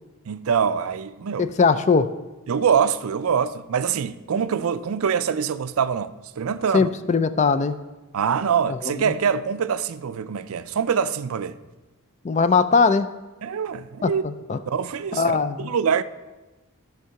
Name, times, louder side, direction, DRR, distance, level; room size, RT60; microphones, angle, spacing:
voice 1, 0.3-1.5 2.5-6.9 8.1-11.6 13.4-14.2 14.7-15.3 15.6-16.0, right 7 dB, 70° right, 0.4 m, -24 dB
voice 2, 1.4-2.1 6.7-7.8 8.7-8.8 9.0-9.1 12.2-13.1 14.0-14.6 15.1-15.7, left 4 dB, 30° left, 0.3 m, -20 dB
13.0 x 4.7 x 5.7 m
head